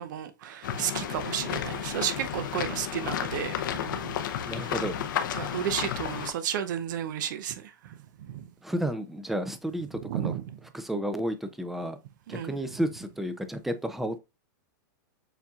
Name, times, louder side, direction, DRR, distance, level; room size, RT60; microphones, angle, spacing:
voice 1, 0.0-3.5 3.9-4.1 4.5-4.7 5.3-8.0 8.3-8.4 10.0-10.6 12.3-12.5, right 10 dB, 65° right, 0.6 m, -33 dB
Intersection Wet, 0.6-6.3, left 9 dB, 75° left, 0.7 m, -32 dB
voice 2, 4.5-5.0 8.6-10.3 10.7-12.0 12.3-14.2, equal, ahead, 0.4 m, -32 dB
7.1 x 2.7 x 2.4 m
supercardioid pair, 140°, 11 cm